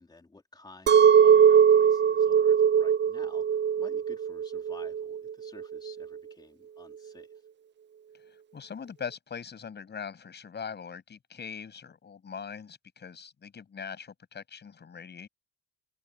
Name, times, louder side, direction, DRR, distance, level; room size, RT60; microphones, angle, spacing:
voice 1, 0.0-7.5, left 3 dB, 10° left, 3.0 m, -53 dB
Chink clink, 0.9-6.0, right 8 dB, 30° right, 0.5 m, -21 dB
voice 2, 8.5-15.3, left 6 dB, 30° left, 7.2 m, -41 dB
open air
cardioid pair, 180°, 35 cm